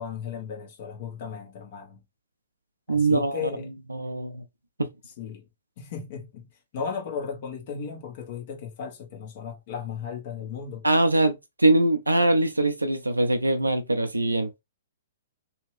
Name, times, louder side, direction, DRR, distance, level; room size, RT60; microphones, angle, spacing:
voice 1, 0.0-2.0 2.9-3.7 5.2-5.4 5.8-6.5 6.7-10.9, left 7 dB, 45° left, 1.1 m, -35 dB
voice 2, 2.9-3.4 3.9-4.4 10.8-14.6, right 2 dB, 85° right, 0.6 m, -22 dB
3.2 x 2.8 x 3.2 m
figure-of-eight pair, 115°, 0 cm